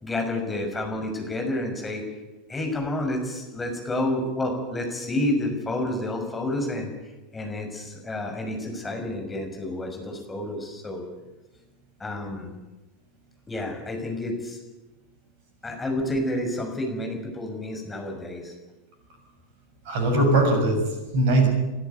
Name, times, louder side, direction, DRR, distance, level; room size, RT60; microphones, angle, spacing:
voice 1, 0.0-2.0 2.5-6.9 7.3-11.0 12.0-12.5 13.5-14.6 15.6-18.5, left 1 dB, 15° left, 3 dB, 6.0 m, -29 dB
voice 2, 19.8-21.5, right 2 dB, 50° right, 5 dB, 6.7 m, -21 dB
22.0 x 13.5 x 9.4 m, 1.1 s
figure-of-eight pair, 85°, 0 cm